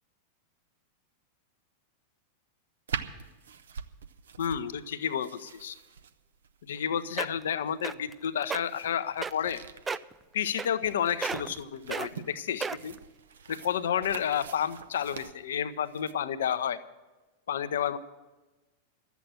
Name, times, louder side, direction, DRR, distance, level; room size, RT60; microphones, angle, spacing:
sound 1, 2.9-16.1, right 7 dB, 65° right, 0.7 m, -44 dB
voice 1, 4.4-5.8 6.7-9.6 10.3-13.0 13.5-16.8 17.5-18.0, left 9 dB, 60° left, 13 dB, 0.6 m, -31 dB
sound 2, 6.7-6.8 7.2-7.5 7.8-8.1 8.4-8.6 9.2-9.6 9.9-10.1 10.6-10.9 11.2-11.6 11.9-12.1 12.6-13.0 13.6-13.7, right 5 dB, 15° right, 0.3 m, -33 dB
12.5 x 8.2 x 8.9 m, 1.2 s
figure-of-eight pair, 90°, 0 cm